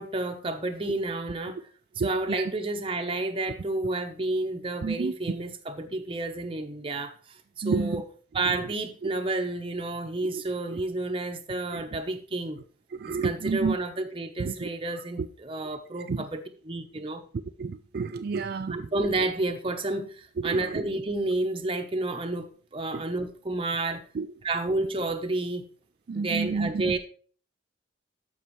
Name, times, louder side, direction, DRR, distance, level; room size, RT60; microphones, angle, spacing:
voice 1, 0.0-1.6 2.0-7.4 7.6-8.0 8.3-12.6 13.1-16.4 16.7-17.2 18.7-24.0 24.4-25.6 26.1-27.0, right 2 dB, 30° right, 0.8 m, -30 dB
voice 2, 2.0-2.5 4.8-5.1 7.6-8.0 8.4-8.6 10.3-10.4 10.7-10.8 11.7-12.0 12.9-13.8 14.4-15.3 16.1-16.3 17.6-18.9 20.4-20.8 22.9-23.0 24.1-24.3 26.1-26.9, right 4 dB, 55° right, 0.4 m, -31 dB
12.5 x 5.4 x 3.1 m
head